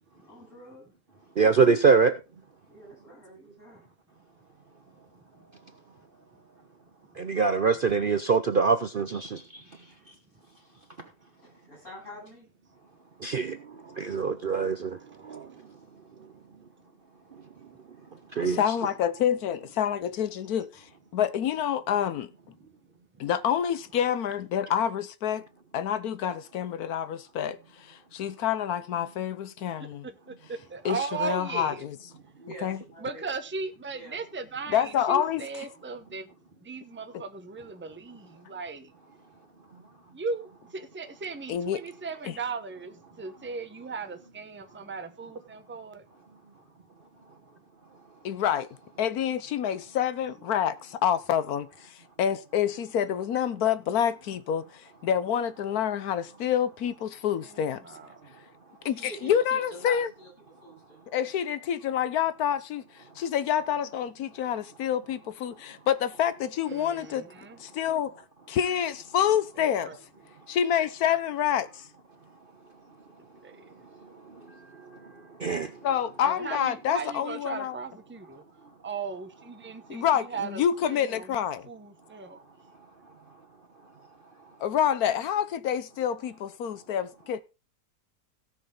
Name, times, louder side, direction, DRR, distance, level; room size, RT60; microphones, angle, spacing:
voice 1, 0.3-0.8 2.7-3.8 9.7-10.1 11.7-12.5 32.4-33.3 33.9-34.2 58.8-60.3 60.6-61.1, equal, 45° left, 8.5 m, -46 dB
voice 2, 1.4-2.2 7.2-9.4 13.2-13.6 14.0-15.0 15.2-15.5 18.4-18.6 75.4-75.7, right 5 dB, 70° right, 0.5 m, -23 dB
voice 3, 9.2-10.1 11.0-11.1 38.5-38.6 39.7-39.9 47.3-47.4 58.2-58.4 63.1-63.2 70.3-70.5 72.6-73.0 73.6-75.9 78.6-78.7 79.6-80.0 82.1-82.3 82.8-83.4 83.8-83.9 84.3-84.6, right 3 dB, 35° right, 1.3 m, -52 dB
voice 4, 18.4-22.3 23.2-25.4 25.7-30.1 30.8-32.0 32.6-32.8 34.7-35.5 41.5-41.8 42.2-42.4 48.2-48.7 49.0-57.8 58.8-60.1 61.1-67.3 67.6-68.1 68.5-70.0 70.5-71.9 75.8-77.8 79.9-81.7 84.6-87.4, left 9 dB, 65° left, 1.2 m, -27 dB
voice 5, 29.8-31.8 33.0-36.3 36.6-38.9 40.1-46.0 57.4-58.1 66.7-67.6 67.9-68.0 69.8-70.0 73.2-73.7 76.2-78.4 78.8-81.4 81.6-82.4, right 4 dB, 10° right, 0.7 m, -37 dB
17.0 x 6.5 x 3.8 m
omnidirectional pair, 1.8 m